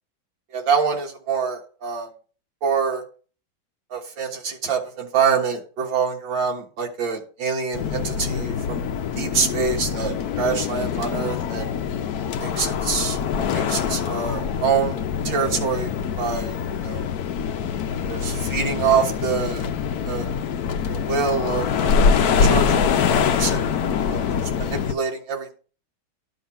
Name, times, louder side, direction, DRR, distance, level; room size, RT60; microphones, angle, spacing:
voice 1, 0.5-2.1 2.6-3.0 3.9-8.8 9.2-11.7 12.4-13.2 13.5-15.9 16.2-16.6 16.8-17.1 18.1-19.7 20.1-20.3 20.9-22.1 22.4-23.7 24.1-25.6, right 6 dB, 65° right, 1 dB, 2.3 m, -25 dB
sound 1, 7.7-24.9, left 6 dB, 65° left, 1.0 m, -24 dB
10.5 x 3.9 x 5.8 m, 0.39 s
omnidirectional pair, 2.2 m